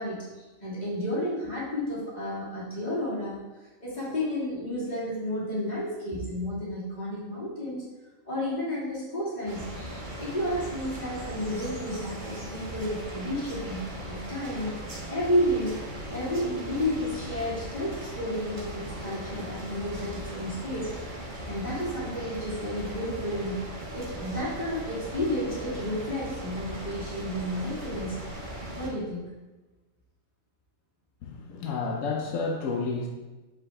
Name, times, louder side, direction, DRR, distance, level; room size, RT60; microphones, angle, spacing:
voice 1, 0.0-3.4 3.8-7.8 8.2-14.8 15.1-15.7 16.1-21.2 21.4-29.3, equal, 35° left, -8 dB, 2.7 m, -32 dB
sound 1, 9.5-28.9, right 1 dB, 40° right, 1.3 m, -38 dB
voice 2, 31.2-33.1, left 4 dB, 85° left, 2 dB, 1.1 m, -30 dB
7.8 x 4.9 x 3.7 m, 1.2 s
omnidirectional pair, 1.3 m